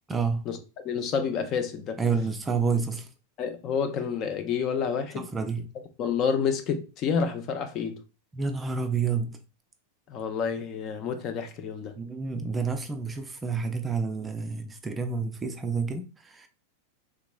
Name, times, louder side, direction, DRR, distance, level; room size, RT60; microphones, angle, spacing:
voice 1, 0.1-0.5 2.0-3.1 5.1-5.7 8.3-9.4 12.0-16.5, right 5 dB, 15° right, 0.4 m, -29 dB
voice 2, 0.8-2.0 3.4-5.3 6.0-8.0 10.1-12.0, left 6 dB, 35° left, 0.5 m, -29 dB
3.5 x 2.9 x 2.2 m
figure-of-eight pair, 90°, 0 cm